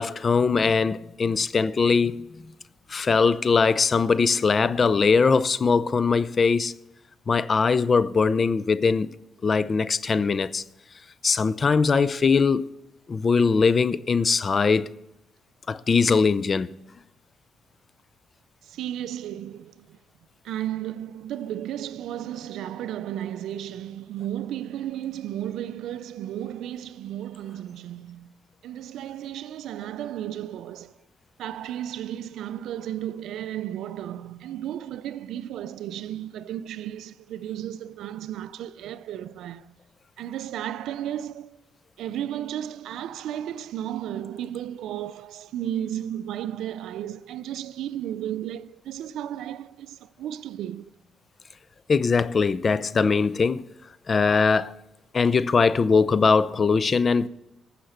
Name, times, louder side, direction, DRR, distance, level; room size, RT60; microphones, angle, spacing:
voice 1, 0.0-2.3 2.9-6.7 7.3-9.1 9.4-10.6 11.2-12.7 13.1-14.9 15.7-16.7 51.9-53.6 54.1-54.7 55.1-57.3, left 5 dB, 40° left, 0.5 m, -21 dB
voice 2, 18.7-20.0 20.4-28.3 28.6-30.9 31.4-39.7 40.2-41.6 42.0-50.9, right 11 dB, 80° right, 0.4 m, -34 dB
15.0 x 5.8 x 7.8 m
cardioid pair, 90°, 0 cm